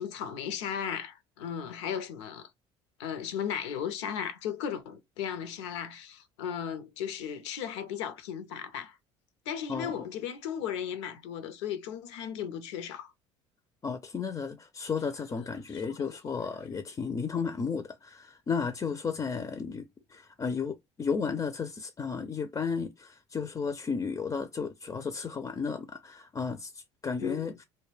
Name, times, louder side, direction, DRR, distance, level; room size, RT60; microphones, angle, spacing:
voice 1, 0.0-2.5 3.0-9.0 9.5-13.1 15.4-16.0 16.2-16.3 16.7-16.8 27.2-27.5, left 8 dB, 80° left, 0.5 m, -36 dB
voice 2, 9.7-10.1 13.8-27.6, left 5 dB, 25° left, 0.4 m, -33 dB
2.2 x 2.1 x 3.2 m
hypercardioid pair, 70°, 14 cm